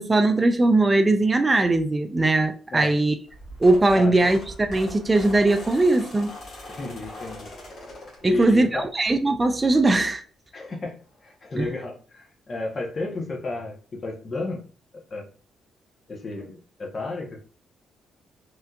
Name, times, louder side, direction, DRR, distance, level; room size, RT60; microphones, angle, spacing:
voice 1, 0.0-3.2 3.6-6.3 8.2-10.2 11.6-11.7, right 2 dB, 20° right, 0.3 m, -20 dB
sound 1, 3.3-8.9 9.4-9.6 10.9-11.0 11.2-11.3 11.7-11.8, left 1 dB, 55° left, 1.5 m, -41 dB
voice 2, 6.7-7.5 8.2-8.9 10.5-11.0 11.2-14.6 14.9-15.3 16.1-17.4, left 2 dB, 40° left, 1.0 m, -32 dB
3.3 x 2.8 x 2.4 m
cardioid pair, 90°, 0 cm